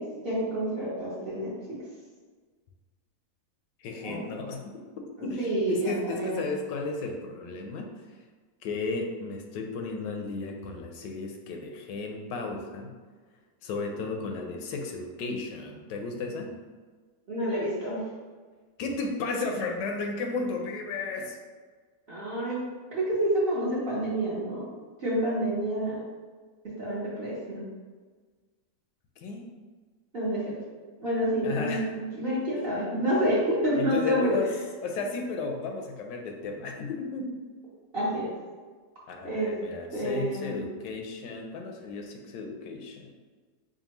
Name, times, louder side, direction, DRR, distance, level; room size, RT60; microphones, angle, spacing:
voice 1, 0.0-1.5 4.0-4.3 5.2-6.4 17.3-18.0 22.1-22.6 22.9-24.6 25.0-26.0 26.6-27.7 30.1-30.6 31.0-31.8 32.1-34.4 37.9-38.3 39.2-39.5 39.9-40.6, right 1 dB, 45° right, -9 dB, 0.9 m, -28 dB
voice 2, 3.8-4.8 5.2-7.9 8.6-12.9 13.6-16.6 18.8-21.4 29.2-29.4 31.4-31.9 33.8-34.5 34.8-37.3 39.1-43.1, left 3 dB, 80° left, 3 dB, 1.2 m, -34 dB
5.2 x 2.3 x 2.9 m, 1.5 s
omnidirectional pair, 1.9 m